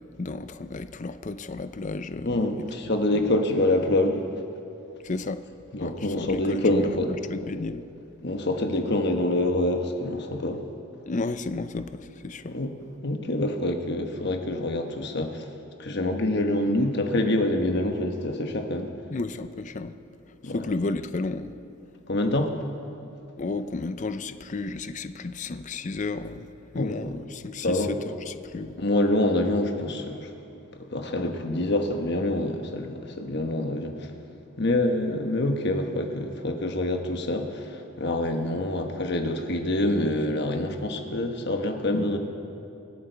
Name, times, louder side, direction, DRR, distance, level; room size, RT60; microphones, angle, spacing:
voice 1, 0.2-2.4 3.1-3.3 5.0-5.4 5.8-7.8 11.1-12.6 19.1-20.0 20.4-21.6 23.4-26.5 26.7-28.8, left 3 dB, 35° left, 11 dB, 0.5 m, -33 dB
voice 2, 2.2-4.2 5.7-7.1 8.2-10.6 12.5-12.7 13.0-15.4 15.8-18.9 20.4-20.6 22.1-22.5 26.8-27.0 27.6-28.0 28.8-30.3 30.9-33.9 34.6-42.2, left 1 dB, 50° left, 5 dB, 1.2 m, -26 dB
25.5 x 8.7 x 4.5 m, 2.7 s
head